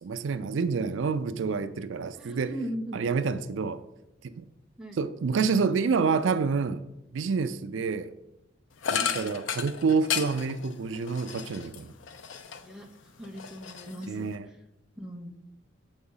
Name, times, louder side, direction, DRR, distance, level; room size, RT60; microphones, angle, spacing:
voice 1, 0.0-2.6 2.9-3.8 4.4-4.5 4.9-6.8 7.1-8.1 8.9-11.9 14.1-14.5, right 5 dB, 85° right, 0.4 m, -28 dB
voice 2, 2.1-3.0 4.8-5.0 9.0-9.3 12.6-12.9 13.2-14.2 15.0-15.3, right 1 dB, 5° right, 0.8 m, -38 dB
sound 1, 8.8-12.8 13.2-14.4, left 7 dB, 85° left, 0.6 m, -34 dB
6.9 x 4.9 x 5.5 m
head